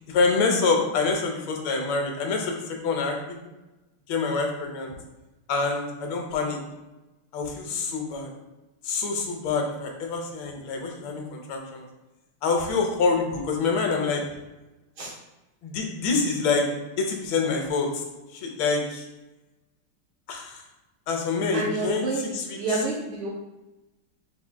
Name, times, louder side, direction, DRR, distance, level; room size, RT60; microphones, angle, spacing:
voice 1, 0.1-3.4 4.1-4.9 5.5-6.6 7.3-8.3 8.8-11.8 12.4-14.2 15.6-16.7 17.0-17.9 18.3-19.0 20.3-20.6 21.1-22.8, left 4 dB, 75° left, 2 dB, 1.5 m, -26 dB
voice 2, 21.5-23.3, right 3 dB, 75° right, -7 dB, 1.6 m, -29 dB
5.9 x 3.5 x 2.2 m, 1.0 s
omnidirectional pair, 2.3 m